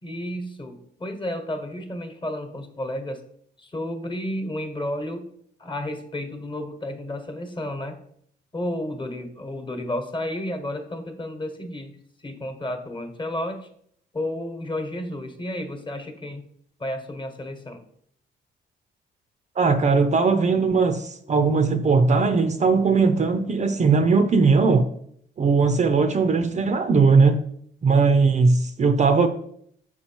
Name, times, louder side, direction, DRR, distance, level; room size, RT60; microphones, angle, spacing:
voice 1, 0.0-3.2 3.6-5.3 5.6-8.0 8.5-13.7 14.1-16.4 16.8-17.8, left 1 dB, 25° left, 1.2 m, -32 dB
voice 2, 19.6-24.9 25.4-27.4 27.8-29.3, right 4 dB, 35° right, 0.6 m, -19 dB
6.0 x 4.4 x 4.4 m
cardioid pair, 90°, 20 cm